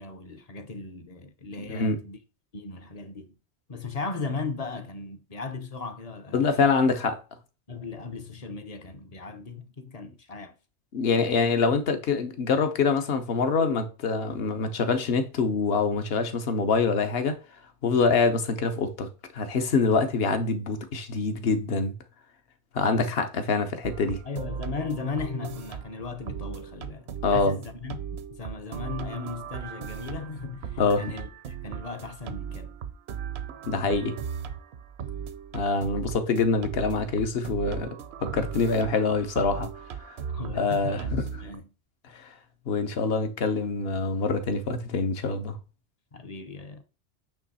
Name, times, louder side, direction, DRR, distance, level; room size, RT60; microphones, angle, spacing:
voice 1, 0.0-2.2 2.5-3.3 3.7-6.4 7.7-10.5 24.2-32.7 40.3-41.7 46.1-46.8, left 4 dB, 40° left, 0.7 m, -37 dB
voice 2, 6.3-7.2 10.9-17.4 17.8-19.1 19.3-21.9 22.7-24.2 27.2-27.6 30.8-31.0 33.7-34.2 35.5-39.7 40.6-41.2 42.1-42.2 42.7-45.6, left 4 dB, 65° left, 1.1 m, -25 dB
sound 1, 23.8-41.6, right 7 dB, 70° right, 0.9 m, -37 dB
8.8 x 3.1 x 4.1 m
omnidirectional pair, 1.1 m